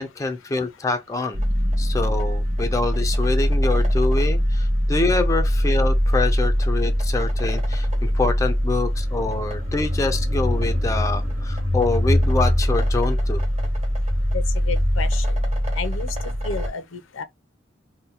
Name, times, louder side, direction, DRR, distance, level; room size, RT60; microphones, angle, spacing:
voice 1, 0.0-1.4 1.8-13.4, left 3 dB, 15° left, 0.4 m, -26 dB
sound 1, 1.3-16.7, equal, 35° right, 1.0 m, -22 dB
voice 2, 14.3-15.4 15.7-16.1 16.4-17.2, left 5 dB, 90° left, 0.6 m, -31 dB
2.7 x 2.1 x 3.9 m
head